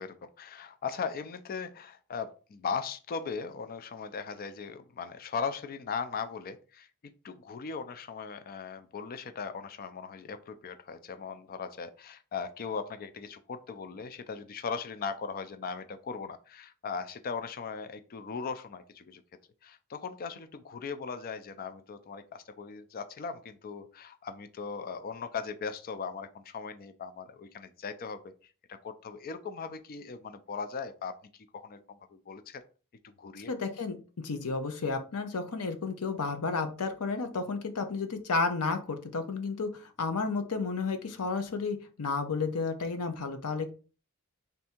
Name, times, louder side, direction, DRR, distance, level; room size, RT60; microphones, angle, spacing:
voice 1, 0.0-6.9 7.2-19.2 19.6-28.3 28.7-31.2 31.5-32.6 33.0-33.5, left 5 dB, 40° left, 10 dB, 0.4 m, -38 dB
voice 2, 33.4-43.7, left 4 dB, 80° left, 8 dB, 0.7 m, -32 dB
3.4 x 2.7 x 4.2 m, 0.36 s
head